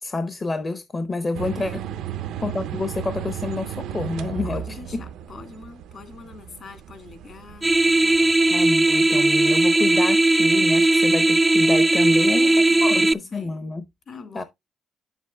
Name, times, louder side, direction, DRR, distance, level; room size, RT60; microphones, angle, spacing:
voice 1, 0.0-1.8 2.4-5.0 8.5-13.9 14.3-14.4, left 3 dB, 30° left, 0.7 m, -28 dB
sound 1, 1.3-9.4, right 10 dB, 85° right, 0.5 m, -35 dB
voice 2, 4.4-8.3 12.1-13.6 14.1-14.4, left 4 dB, 50° left, 1.9 m, -43 dB
sound 2, 7.6-13.1, right 2 dB, 15° right, 0.4 m, -18 dB
9.5 x 7.2 x 2.2 m
cardioid pair, 90°, 0 cm